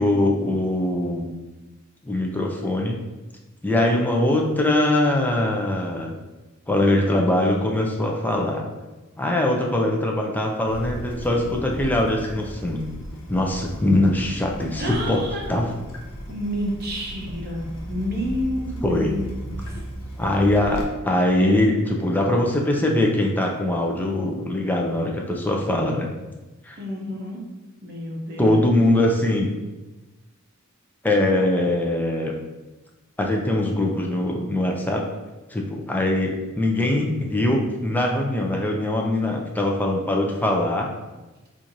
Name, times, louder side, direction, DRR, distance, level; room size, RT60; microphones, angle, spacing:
voice 1, 0.0-1.3 2.0-3.0 3.6-6.1 6.7-8.6 9.2-12.8 13.3-15.7 18.8-19.2 20.2-26.1 26.6-26.8 28.4-29.5 31.0-32.4 33.2-35.0 35.5-40.9, left 1 dB, 10° left, 0 dB, 0.4 m, -22 dB
Water tap faucet / Drip, 10.7-20.8, equal, 70° left, 0.7 m, -36 dB
voice 2, 14.8-15.5 16.3-19.8 26.8-27.4 27.8-28.6, equal, 50° right, -1 dB, 0.7 m, -30 dB
4.4 x 2.5 x 2.6 m, 1.1 s
head